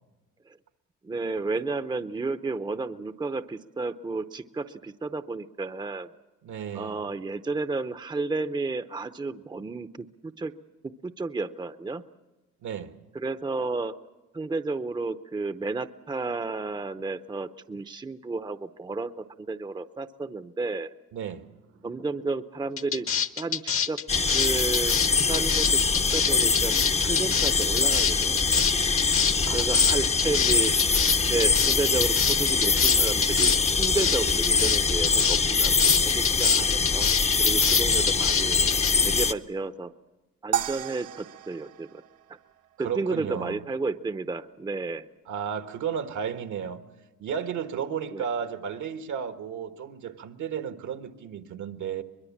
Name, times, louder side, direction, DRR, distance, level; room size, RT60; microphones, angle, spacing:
voice 1, 1.0-6.1 6.7-10.5 11.0-12.0 13.1-13.9 14.3-20.9 21.8-23.1 23.4-24.0 24.3-25.0 25.3-25.8 26.1-28.7 29.5-30.7 31.3-37.1 37.4-38.6 39.0-39.9 40.4-41.9 42.8-45.1 48.1-48.2, right 3 dB, 15° right, 0.7 m, -32 dB
voice 2, 6.4-7.0 12.6-12.9 21.1-21.5 29.4-30.0 30.4-30.6 42.8-43.6 45.3-46.9 47.2-52.0, right 7 dB, 75° right, 1.5 m, -33 dB
sound 1, 22.8-38.9, left 7 dB, 45° left, 0.9 m, -27 dB
sound 2, 24.1-39.3, left 4 dB, 20° left, 0.7 m, -23 dB
sound 3, 40.5-42.9, right 10 dB, 55° right, 1.0 m, -33 dB
23.5 x 21.5 x 7.3 m
cardioid pair, 90°, 30 cm